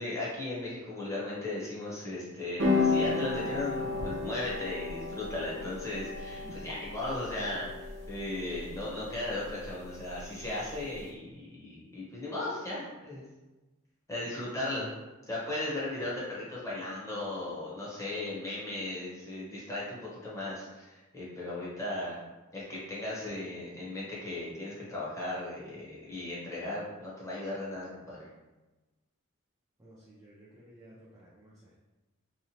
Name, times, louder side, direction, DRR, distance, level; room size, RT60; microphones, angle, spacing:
voice 1, 0.0-13.2 14.1-14.9 15.3-22.2 22.5-28.3, left 2 dB, 15° left, -7 dB, 0.7 m, -36 dB
sound 1, 2.6-11.0, left 3 dB, 60° right, 0.6 m, -34 dB
voice 2, 29.8-31.8, right 1 dB, 15° right, -8 dB, 0.4 m, -53 dB
2.8 x 2.0 x 2.7 m, 1.1 s
head